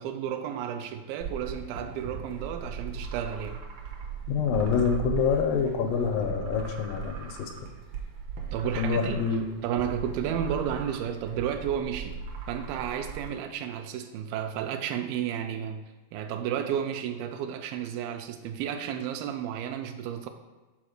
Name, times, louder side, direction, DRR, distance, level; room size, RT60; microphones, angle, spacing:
voice 1, 0.0-3.6 8.5-9.4 9.6-12.2 12.5-15.8 16.1-20.3, right 9 dB, 90° right, 5 dB, 2.4 m, -32 dB
sound 1, 1.2-13.3, right 6 dB, 75° right, 1.3 m, -38 dB
voice 2, 4.3-7.5 8.8-9.5, left 6 dB, 80° left, 5 dB, 2.3 m, -26 dB
5.8 x 4.4 x 6.3 m, 1.3 s
omnidirectional pair, 4.1 m